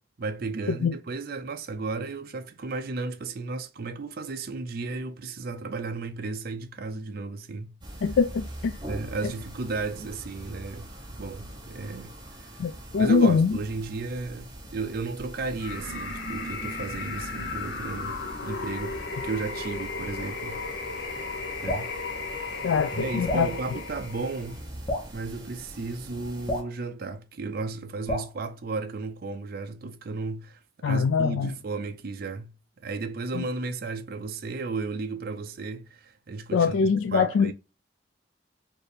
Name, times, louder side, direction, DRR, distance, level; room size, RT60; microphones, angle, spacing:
voice 1, 0.2-7.7 8.9-12.7 13.0-20.6 21.6-21.9 22.9-24.6 25.1-37.5, right 3 dB, 50° right, 0.5 m, -34 dB
sound 1, 7.8-26.6, right 1 dB, 25° right, 0.8 m, -43 dB
voice 2, 8.0-8.8 12.6-13.6 22.6-23.5 30.8-31.5 33.3-33.4 36.5-37.5, left 5 dB, 85° left, 0.3 m, -23 dB
sound 2, 15.6-24.6, left 3 dB, 70° left, 0.8 m, -35 dB
Drip, 21.6-21.9 23.3-23.5 24.9-25.1 26.5-26.7 28.1-28.3, left 1 dB, 30° left, 1.0 m, -30 dB
4.3 x 2.6 x 3.2 m
head